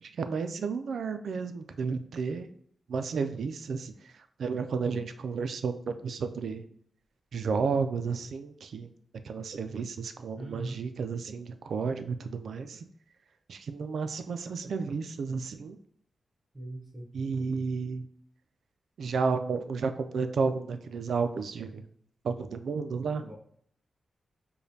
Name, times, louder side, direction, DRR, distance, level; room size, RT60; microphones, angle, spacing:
voice 1, 0.0-2.5 2.9-4.1 4.4-6.6 7.3-8.9 9.2-12.8 13.5-15.8 17.1-18.1 19.0-21.8 22.2-23.3, right 5 dB, 80° right, 9 dB, 0.3 m, -32 dB
voice 2, 10.4-10.8 16.5-17.1 23.2-23.3, right 1 dB, 20° right, -2 dB, 0.9 m, -40 dB
5.0 x 2.2 x 2.7 m, 0.63 s
wide cardioid pair, 110°, 0 cm